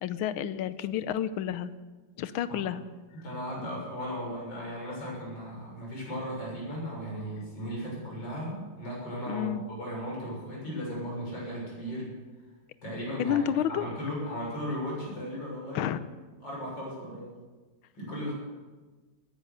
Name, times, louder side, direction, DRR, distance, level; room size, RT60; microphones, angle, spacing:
voice 1, 0.0-1.7 2.2-2.8 9.3-9.6 13.2-13.9 15.7-16.0, left 10 dB, 75° left, 13 dB, 1.5 m, -30 dB
voice 2, 3.2-12.1 12.8-13.4 13.7-15.9 16.4-17.3 17.9-18.3, equal, 50° left, -4 dB, 7.6 m, -36 dB
20.0 x 10.5 x 6.7 m, 1.3 s
omnidirectional pair, 2.4 m